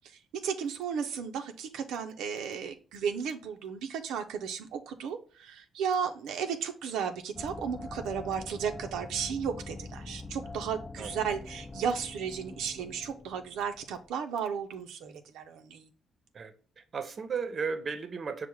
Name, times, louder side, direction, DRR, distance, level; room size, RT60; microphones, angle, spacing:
voice 1, 0.4-15.9, right 7 dB, 90° right, 0.4 m, -34 dB
sound 1, 7.3-14.1, left 3 dB, 20° left, 0.5 m, -44 dB
voice 2, 16.3-18.5, right 5 dB, 45° right, 0.6 m, -35 dB
5.6 x 2.0 x 4.5 m
cardioid pair, 90°, 0 cm